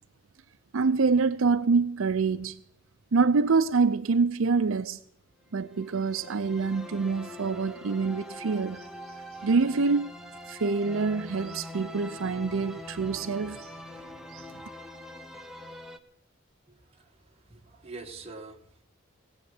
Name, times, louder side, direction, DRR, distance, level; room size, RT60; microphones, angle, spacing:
voice 1, 0.7-2.6 3.1-5.0 5.5-8.9 9.4-10.1 10.5-13.7 14.3-14.5, right 4 dB, 80° right, 0.6 m, -26 dB
sound 1, 5.6-16.0, left 1 dB, 5° right, 1.0 m, -44 dB
voice 2, 16.7-18.8, right 3 dB, 30° right, 1.7 m, -46 dB
18.0 x 8.2 x 8.3 m
head